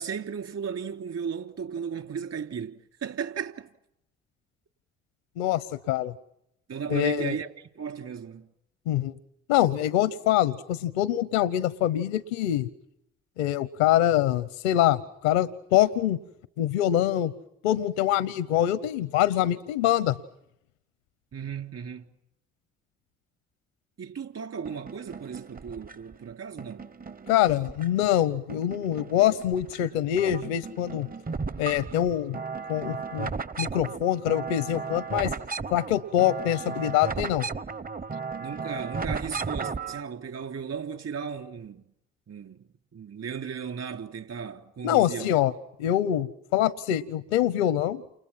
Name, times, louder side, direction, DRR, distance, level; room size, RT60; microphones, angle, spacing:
voice 1, 0.0-3.7 6.7-7.5 7.8-8.5 21.3-22.1 24.0-26.9 38.4-41.8 42.3-42.6 42.9-45.3, right 7 dB, 55° right, 3.3 m, -35 dB
voice 2, 5.4-6.1 6.9-7.4 8.9-9.2 9.5-12.7 13.4-16.2 16.6-17.3 17.6-20.2 27.3-31.1 31.6-32.4 32.7-33.3 33.6-35.3 35.7-37.5 44.8-45.5 45.8-48.0, left 12 dB, 85° left, 0.9 m, -24 dB
sound 1, 24.7-26.1 26.6-28.2 28.5-29.8 30.1-40.0, right 4 dB, 30° right, 0.9 m, -35 dB
30.0 x 29.0 x 5.8 m
hypercardioid pair, 45°, 31 cm